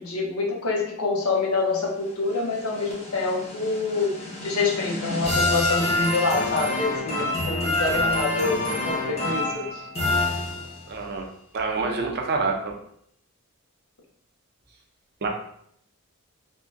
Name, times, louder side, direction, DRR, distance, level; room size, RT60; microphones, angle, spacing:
voice 1, 0.0-4.1 4.4-9.8, left 3 dB, 85° left, 0 dB, 0.7 m, -26 dB
sound 1, 2.1-11.0, left 2 dB, 30° left, 0.7 m, -27 dB
voice 2, 7.7-8.0 10.9-11.3 11.5-12.7 15.2-15.3, right 4 dB, 50° right, 1 dB, 0.5 m, -27 dB
3.6 x 2.1 x 2.5 m, 0.67 s
head